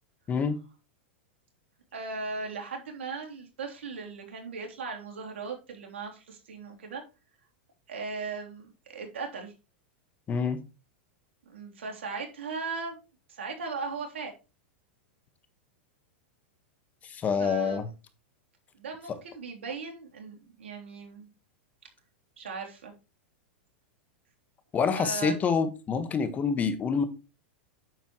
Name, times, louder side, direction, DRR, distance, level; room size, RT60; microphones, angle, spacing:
voice 1, 1.9-7.0 7.9-9.5 11.5-13.0 13.3-14.3 17.4-17.9 18.7-21.3 22.4-22.9 24.9-25.3, right 4 dB, 85° right, 3.4 m, -38 dB
voice 2, 10.3-10.6 17.0-17.9 24.7-27.0, left 6 dB, 25° left, 1.5 m, -27 dB
9.3 x 7.3 x 3.1 m
hypercardioid pair, 120°, 6 cm